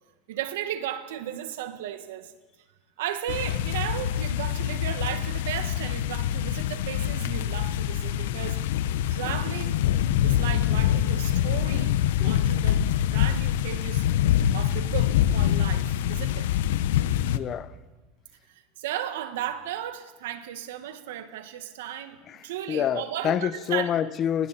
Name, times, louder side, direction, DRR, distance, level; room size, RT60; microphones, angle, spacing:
voice 1, 0.3-2.3 3.0-8.6 9.1-9.8 10.0-12.0 12.2-12.8 13.1-14.0 14.5-16.5 18.5-23.9, right 11 dB, 90° right, 1.7 m, -35 dB
sound 1, 3.3-17.4, left 11 dB, 85° left, 0.9 m, -25 dB
voice 2, 17.3-17.8 22.3-24.5, left 9 dB, 30° left, 0.6 m, -28 dB
29.5 x 21.0 x 4.3 m
supercardioid pair, 150°, 0 cm